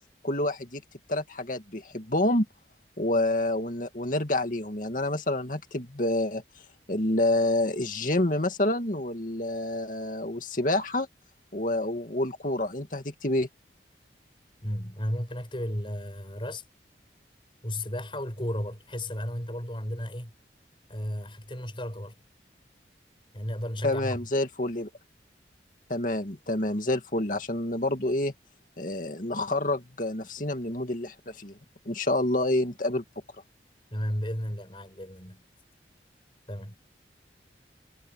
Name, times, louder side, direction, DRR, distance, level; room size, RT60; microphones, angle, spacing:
voice 1, 0.2-0.8 1.1-2.5 3.0-6.4 6.9-11.1 11.5-13.5 23.8-24.9 25.9-28.3 28.8-31.6 31.9-33.0, left 1 dB, 45° left, 2.4 m, -28 dB
voice 2, 14.6-16.6 17.6-20.3 20.9-22.2 23.3-24.3 33.9-35.4 36.5-36.8, equal, 30° left, 6.7 m, -34 dB
head